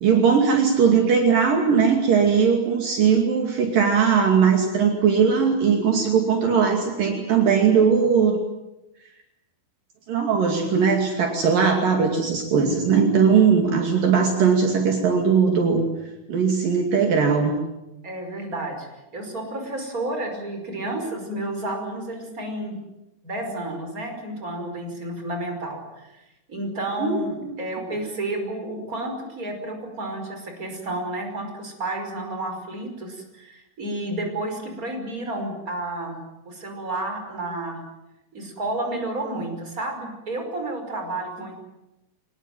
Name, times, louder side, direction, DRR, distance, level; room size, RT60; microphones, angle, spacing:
voice 1, 0.0-8.4 10.1-15.9 16.3-17.6 27.0-27.5, right 6 dB, 60° right, 3 dB, 4.1 m, -19 dB
voice 2, 18.0-18.9 19.1-22.8 23.2-36.2 36.5-37.8 38.3-41.5, right 1 dB, 20° right, 4 dB, 5.5 m, -31 dB
24.0 x 21.0 x 9.3 m, 0.95 s
omnidirectional pair, 4.5 m